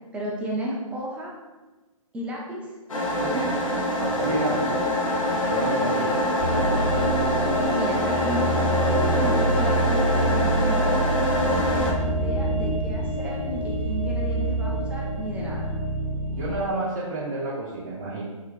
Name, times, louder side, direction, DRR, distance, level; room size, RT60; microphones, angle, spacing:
voice 1, 0.1-1.3 2.1-2.7 5.8-6.2 7.7-15.7, equal, 5° right, -3 dB, 0.5 m, -33 dB
sound 1, 2.9-11.9, equal, 70° left, 1.0 m, -25 dB
sound 2, 3.0-11.8, right 1 dB, 70° right, 0.7 m, -42 dB
voice 2, 3.2-3.6 4.0-4.8 5.5-6.2 6.5-6.8 16.3-18.2, right 2 dB, 35° right, -7 dB, 0.8 m, -30 dB
sound 3, 6.4-16.6, right 1 dB, 45° left, 1.2 m, -26 dB
4.7 x 2.9 x 3.1 m, 1.2 s
figure-of-eight pair, 130°, 18 cm